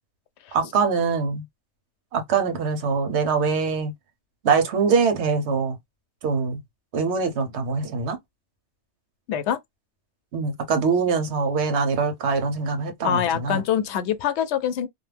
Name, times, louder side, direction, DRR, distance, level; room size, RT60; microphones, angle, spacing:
voice 1, 0.5-1.4 2.1-3.9 4.4-5.8 6.2-6.6 6.9-8.2 10.3-13.6, right 5 dB, 80° right, 1.0 m, -23 dB
voice 2, 9.3-9.6 13.0-14.9, left 9 dB, 80° left, 0.9 m, -24 dB
2.5 x 2.1 x 3.2 m
omnidirectional pair, 1.1 m